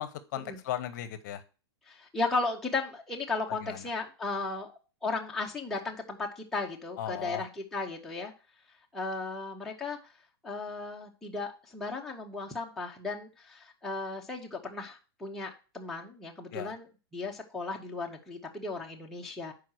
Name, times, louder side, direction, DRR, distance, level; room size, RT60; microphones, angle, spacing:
voice 1, 0.0-1.4 3.6-3.8 7.0-7.4 16.5-16.7, left 11 dB, 45° left, 0.8 m, -36 dB
voice 2, 1.9-8.3 8.9-10.0 10.4-16.9 17.1-19.5, left 3 dB, ahead, 0.7 m, -35 dB
5.8 x 4.8 x 6.3 m
hypercardioid pair, 160°, 14 cm